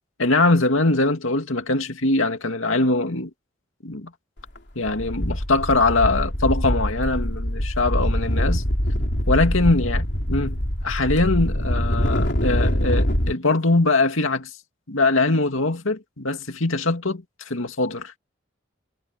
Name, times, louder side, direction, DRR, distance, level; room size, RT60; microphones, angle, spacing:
voice 1, 0.2-3.3 3.8-4.1 4.8-8.6 9.3-10.0 10.3-14.5 14.9-18.2, left 2 dB, 90° left, 2.5 m, -22 dB
sound 1, 4.4-4.6 4.9-13.3, equal, 55° left, 3.5 m, -23 dB
head